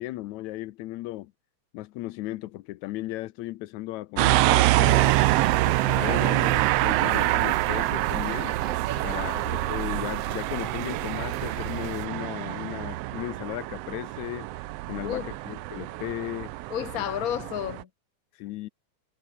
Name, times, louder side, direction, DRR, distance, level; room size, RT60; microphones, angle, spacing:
voice 1, 0.0-1.3 1.7-5.2 5.6-8.6 9.0-14.5 14.9-16.5 18.4-18.7, left 17 dB, 75° left, 2.0 m, -36 dB
sound 1, 4.2-17.8, right 18 dB, 85° right, 1.4 m, -26 dB
sound 2, 4.8-12.1, right 9 dB, 55° right, 2.4 m, -37 dB
voice 2, 9.0-9.7 15.0-15.4 16.7-17.9, left 11 dB, 50° left, 1.0 m, -33 dB
omnidirectional pair, 3.4 m